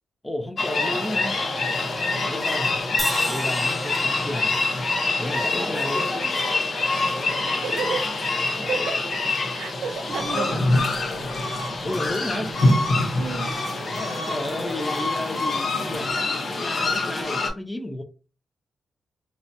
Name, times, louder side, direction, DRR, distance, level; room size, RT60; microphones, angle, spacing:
voice 1, 0.2-1.4 2.2-2.7 3.3-4.5 5.2-6.1 10.3-10.8 11.8-12.5 14.0-18.0, left 1 dB, 15° left, 0.6 m, -32 dB
sound 1, 0.6-17.5, left 2 dB, 60° left, 0.9 m, -25 dB
voice 2, 2.1-2.4 7.6-8.1 8.6-9.0 9.5-10.9 11.8-12.0 12.3-12.5 13.2-13.5, right 6 dB, 90° right, 0.4 m, -32 dB
Crash cymbal, 3.0-7.0, right 1 dB, 10° right, 0.9 m, -36 dB
2.8 x 2.2 x 2.6 m
cardioid pair, 60°, 0 cm